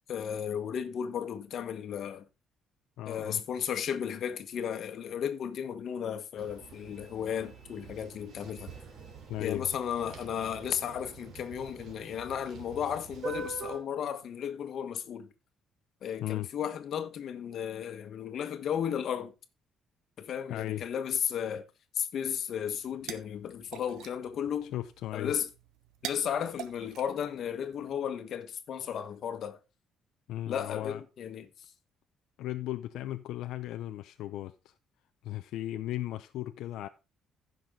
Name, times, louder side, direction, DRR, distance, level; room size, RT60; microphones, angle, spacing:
voice 1, 0.1-2.2 3.1-8.7 9.4-15.3 16.0-19.3 20.2-21.6 21.9-24.7 25.1-25.5 26.0-29.6 30.5-31.7, left 8 dB, 45° left, 1.2 m, -34 dB
voice 2, 3.0-3.4 9.3-9.7 16.2-16.5 20.5-20.8 24.7-25.3 30.3-31.0 32.4-34.7 35.2-36.9, left 14 dB, 75° left, 0.6 m, -36 dB
sound 1, 6.4-13.8, right 4 dB, 45° right, 3.0 m, -45 dB
sound 2, 22.6-27.9, right 10 dB, 90° right, 1.1 m, -46 dB
15.0 x 6.2 x 3.7 m
cardioid pair, 180°, 0 cm